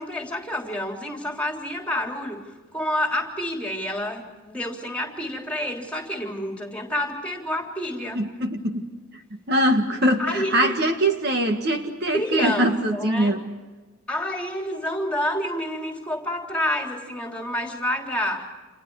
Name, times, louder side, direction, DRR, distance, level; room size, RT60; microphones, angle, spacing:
voice 1, 0.0-2.4 2.7-8.2 10.2-10.7 12.1-13.4 14.1-18.5, left 1 dB, 5° left, 1 dB, 3.6 m, -28 dB
voice 2, 8.1-8.9 9.5-13.4, right 1 dB, 50° right, 5 dB, 1.7 m, -22 dB
30.0 x 28.0 x 4.8 m, 1.3 s
head